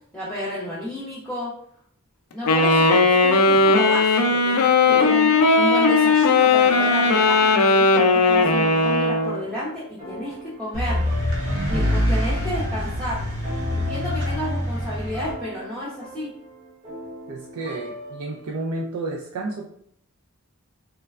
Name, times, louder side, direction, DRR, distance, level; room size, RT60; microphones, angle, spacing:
voice 1, 0.1-1.5 2.3-11.0 11.7-13.2 13.6-16.3, left 1 dB, 5° left, -10 dB, 0.6 m, -31 dB
Wind instrument woodwind instrument, 2.5-9.4, left 3 dB, 85° left, 0.4 m, -17 dB
sound 1, 4.9-18.6, equal, 30° right, 0.9 m, -38 dB
sound 2, 10.7-15.3, left 1 dB, 55° right, 0.9 m, -25 dB
voice 2, 17.3-19.6, right 2 dB, 70° right, 0 dB, 0.3 m, -31 dB
3.1 x 2.1 x 2.3 m, 0.66 s
head